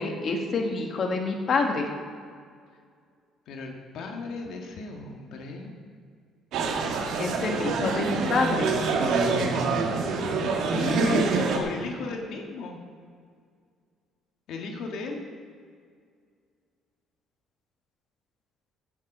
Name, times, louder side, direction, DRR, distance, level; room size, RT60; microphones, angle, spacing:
voice 1, 0.0-1.9 7.2-8.7 10.4-11.0, left 3 dB, 45° left, 2 dB, 1.7 m, -27 dB
voice 2, 3.5-5.7 10.8-12.8 14.5-15.2, left 3 dB, 70° left, 2 dB, 1.7 m, -35 dB
sound 1, 6.5-11.6, right 4 dB, 70° right, 1.8 m, -26 dB
16.0 x 7.6 x 5.4 m, 2.1 s
cardioid pair, 120°, 0 cm